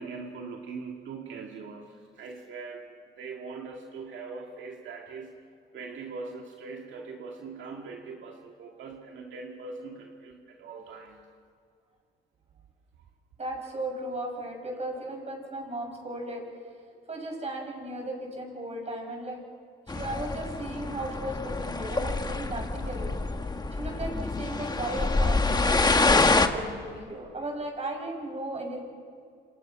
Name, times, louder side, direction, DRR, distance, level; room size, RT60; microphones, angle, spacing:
voice 1, 0.0-2.8 3.2-5.4 5.7-11.3, right 4 dB, 70° right, 1 dB, 2.2 m, -41 dB
voice 2, 13.4-16.4 17.1-19.4 19.9-23.1 23.7-28.9, right 1 dB, 35° right, 2 dB, 7.3 m, -36 dB
sound 1, 19.9-26.5, left 3 dB, 20° left, 1.5 m, -26 dB
28.5 x 27.0 x 6.0 m, 2.2 s
cardioid pair, 90°, 20 cm